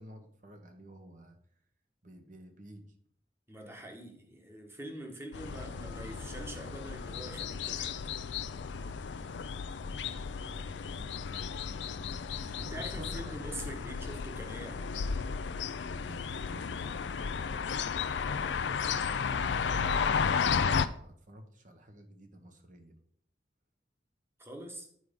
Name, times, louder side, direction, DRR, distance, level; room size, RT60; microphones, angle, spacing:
voice 1, 0.0-1.4 2.0-2.8 9.7-12.1 12.5-14.0 16.0-22.9, equal, 45° right, 5 dB, 1.3 m, -52 dB
voice 2, 3.5-8.1 12.5-15.1 24.4-24.9, right 1 dB, 15° right, 2 dB, 1.4 m, -44 dB
sound 1, 5.3-20.9, left 6 dB, 75° left, 0.5 m, -34 dB
9.1 x 4.8 x 5.3 m, 0.64 s
head